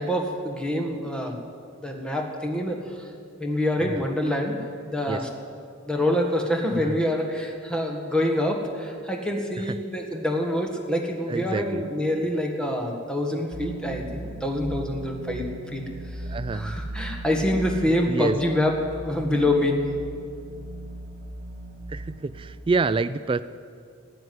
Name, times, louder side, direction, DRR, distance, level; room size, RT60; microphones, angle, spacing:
voice 1, 0.0-1.4 1.8-2.8 3.4-4.5 4.9-5.3 5.9-15.4 15.7-15.8 16.5-18.8 19.0-19.8, left 1 dB, 5° left, 2 dB, 1.6 m, -26 dB
voice 2, 11.3-11.8 16.3-16.8 18.1-18.4 21.9-23.4, right 4 dB, 25° right, 14 dB, 0.3 m, -27 dB
sound 1, 13.5-22.6, right 1 dB, 55° right, 1.6 m, -38 dB
13.0 x 9.6 x 9.4 m, 2.3 s
head